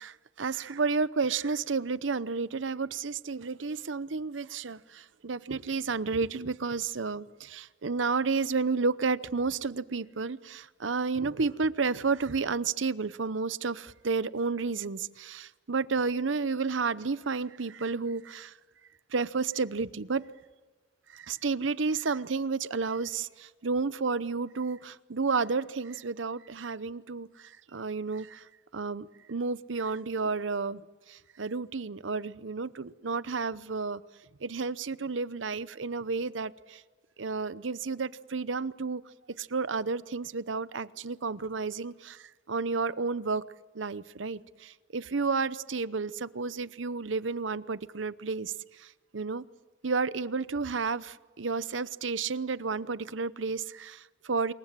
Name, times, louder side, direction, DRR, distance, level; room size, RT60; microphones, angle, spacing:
voice 1, 0.0-18.5 19.1-20.2 21.1-28.4 28.7-30.8 31.1-34.0 34.4-36.8 37.2-39.0 39.4-43.4 43.7-48.5 48.8-49.4 49.8-54.5, right 4 dB, 90° right, 16 dB, 0.8 m, -31 dB
27.5 x 22.5 x 7.5 m, 1.3 s
head